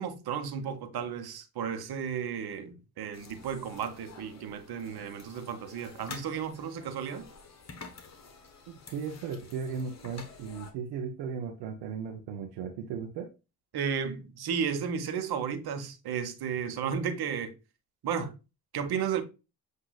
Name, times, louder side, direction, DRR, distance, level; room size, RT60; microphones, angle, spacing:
voice 1, 0.0-7.3 13.7-17.5 18.0-18.3 18.7-19.2, right 7 dB, 60° right, 1.1 m, -33 dB
sound 1, 3.1-10.7, left 4 dB, 40° left, 1.2 m, -49 dB
voice 2, 8.7-13.3, right 6 dB, 75° right, 0.8 m, -36 dB
7.9 x 2.7 x 2.3 m
supercardioid pair, 55°, 43 cm